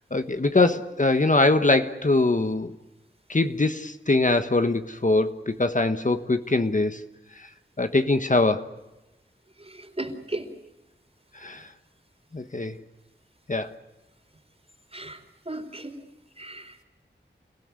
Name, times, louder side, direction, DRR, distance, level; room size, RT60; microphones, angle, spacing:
voice 1, 0.1-2.7 3.3-7.0 7.8-8.7 11.4-11.6 12.3-12.8 13.5-13.7, left 2 dB, 40° left, 1.2 m, -22 dB
voice 2, 9.6-10.5 14.9-15.2 15.5-16.0 16.4-16.8, right 1 dB, 30° right, 4.0 m, -36 dB
30.0 x 16.5 x 9.7 m
wide cardioid pair, 60°, 20 cm